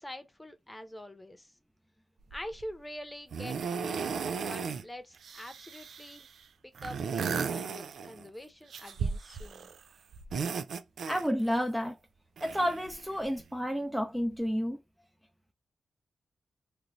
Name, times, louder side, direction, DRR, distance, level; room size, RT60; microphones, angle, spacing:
voice 1, 0.0-1.5 2.3-4.1 4.4-6.3 6.8-9.7, left 1 dB, 15° left, 0.9 m, -45 dB
sound 1, 2.3-2.6 3.3-4.8 5.1-6.3 6.8-8.3 8.7-9.8 10.1-11.6 12.4-13.4 14.3-14.4, right 6 dB, 80° right, 0.4 m, -36 dB
voice 2, 11.1-12.0 12.4-14.8, equal, ahead, 0.5 m, -30 dB
3.1 x 2.5 x 2.6 m
cardioid pair, 55°, 0 cm